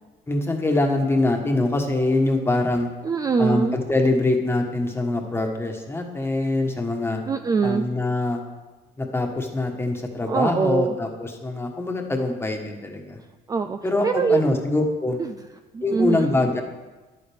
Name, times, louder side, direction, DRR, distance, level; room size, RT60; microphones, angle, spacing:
voice 1, 0.3-2.9 3.4-7.2 7.6-8.4 9.0-13.2 13.8-15.2 15.8-16.6, left 2 dB, 15° left, 2 dB, 1.4 m, -24 dB
voice 2, 3.0-3.8 7.3-7.9 10.3-11.0 13.5-14.6 15.2-15.4 15.7-16.3, right 5 dB, 20° right, 8 dB, 0.4 m, -23 dB
10.0 x 9.1 x 3.6 m, 1.2 s
cardioid pair, 115°, 18 cm